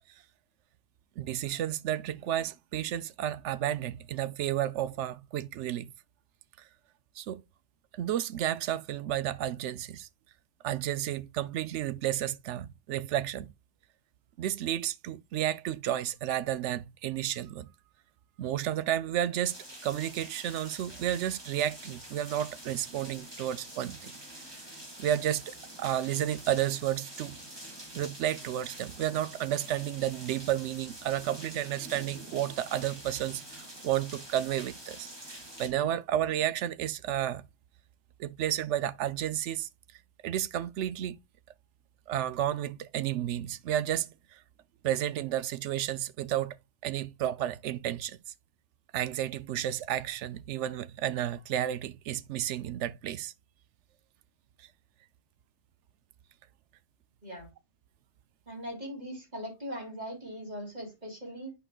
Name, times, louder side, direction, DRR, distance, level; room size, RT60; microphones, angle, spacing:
voice 1, 1.2-5.9 7.2-7.4 8.0-10.1 10.6-13.5 14.4-17.7 18.4-19.6 19.8-24.1 25.0-27.4 27.9-37.4 38.2-39.7 40.2-41.2 42.1-44.4 44.8-46.6 46.8-48.2 48.9-53.3, right 11 dB, 75° right, 0.9 m, -32 dB
sound 1, 19.4-35.7, right 1 dB, 20° right, 2.3 m, -46 dB
voice 2, 58.5-61.5, equal, 35° right, 3.3 m, -40 dB
11.0 x 4.5 x 2.3 m
omnidirectional pair, 1.2 m